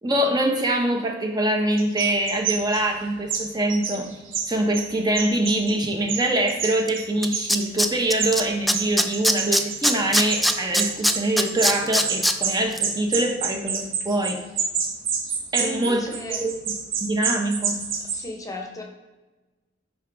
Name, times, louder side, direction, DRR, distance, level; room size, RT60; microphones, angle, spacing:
voice 1, 0.0-4.1 4.5-14.4 15.5-16.5 17.0-17.8, right 1 dB, 20° right, 3 dB, 0.7 m, -24 dB
sound 1, 1.8-2.8 3.3-4.9 5.1-5.7 6.1-7.7 8.1-18.2, right 6 dB, 70° right, 1.1 m, -28 dB
Tools, 6.9-7.0 7.2-8.4 8.7-12.3 12.7-12.8, equal, ahead, 0.3 m, -20 dB
voice 2, 15.6-16.4 18.1-18.8, left 1 dB, 20° left, 1 dB, 0.9 m, -35 dB
9.9 x 3.9 x 3.4 m, 1.2 s
head